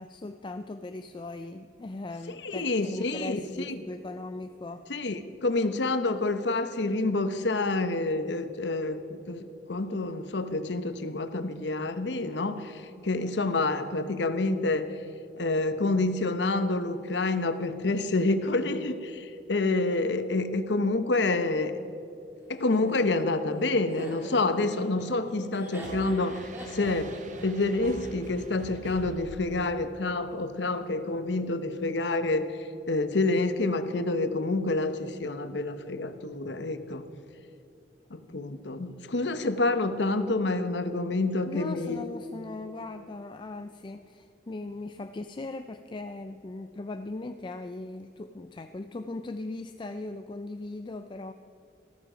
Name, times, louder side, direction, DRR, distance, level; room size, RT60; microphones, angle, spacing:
voice 1, 0.0-4.9 38.3-38.4 41.5-51.3, left 2 dB, 25° left, 8 dB, 0.4 m, -39 dB
voice 2, 2.4-3.8 4.9-14.9 15.4-21.8 22.5-27.2 27.4-32.6 32.9-37.0 38.1-42.0, left 2 dB, 75° left, 10 dB, 0.9 m, -28 dB
Laughter, 22.7-28.8, right 1 dB, 10° right, 2.2 m, -44 dB
sound 1, 25.8-30.1, right 2 dB, 45° right, 0.9 m, -44 dB
14.5 x 14.0 x 5.0 m, 2.8 s
head